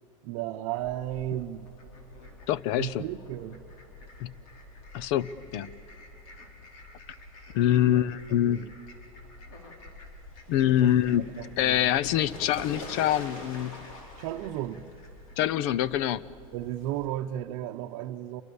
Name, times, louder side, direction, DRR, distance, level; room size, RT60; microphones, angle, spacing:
voice 1, 0.2-1.7 2.8-3.6 7.9-8.0 8.3-8.7 10.8-10.9 11.4-11.9 14.2-14.8 16.5-18.4, right 13 dB, 50° right, 2 dB, 0.9 m, -34 dB
Fowl, 0.7-17.0, left 2 dB, 85° left, 5.1 m, -46 dB
voice 2, 2.5-3.0 4.2-4.3 4.9-5.7 7.5-8.7 10.5-11.3 11.6-13.8 15.4-16.2, left 12 dB, 50° left, 20 dB, 0.7 m, -25 dB
28.5 x 24.0 x 7.0 m, 2.6 s
supercardioid pair, 165°, 17 cm